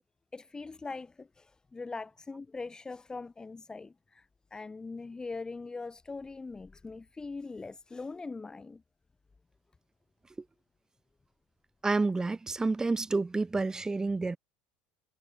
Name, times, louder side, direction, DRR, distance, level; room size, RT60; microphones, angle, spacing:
voice 1, 0.3-1.5 1.7-4.2 4.5-8.8, left 3 dB, 15° left, 2.8 m, -41 dB
voice 2, 11.8-14.4, right 3 dB, 15° right, 1.3 m, -29 dB
supercardioid pair, 115°, 5 cm